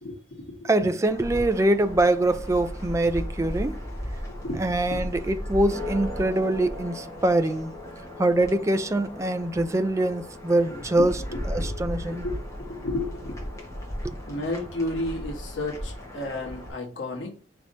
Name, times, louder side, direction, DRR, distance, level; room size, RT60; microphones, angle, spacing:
voice 1, 0.0-0.9 4.3-5.1 10.7-13.5 14.3-17.3, left 2 dB, 70° left, 1.4 m, -33 dB
voice 2, 0.7-3.8 4.6-7.7 8.2-11.1 11.5-12.2 14.0-14.2, right 1 dB, 15° right, 0.3 m, -24 dB
sound 1, 1.1-16.7, equal, 15° left, 1.3 m, -36 dB
5.1 x 3.4 x 2.6 m
head